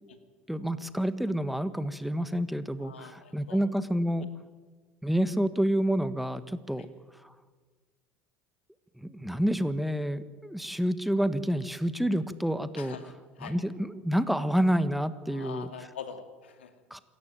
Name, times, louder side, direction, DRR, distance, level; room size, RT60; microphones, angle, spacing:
voice 1, 0.5-4.3 5.0-6.9 7.2-7.3 9.0-13.0 13.4-15.7 16.9-17.0, equal, ahead, 12 dB, 1.5 m, -28 dB
voice 2, 2.8-3.6 12.8-13.6 15.3-16.7, left 7 dB, 90° left, 8 dB, 2.4 m, -44 dB
27.0 x 14.5 x 9.0 m, 1.5 s
hypercardioid pair, 75°, 6 cm